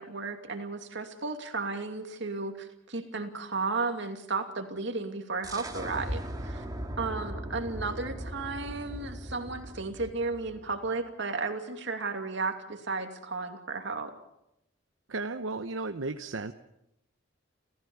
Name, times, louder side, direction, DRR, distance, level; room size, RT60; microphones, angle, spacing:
voice 1, 0.0-6.6 7.0-14.1, right 3 dB, 65° right, 5 dB, 2.7 m, -34 dB
sound 1, 5.4-10.9, right 1 dB, 20° right, 2.3 m, -39 dB
voice 2, 15.1-16.5, right 3 dB, 80° right, 8 dB, 0.9 m, -34 dB
29.5 x 15.0 x 7.2 m, 0.85 s
head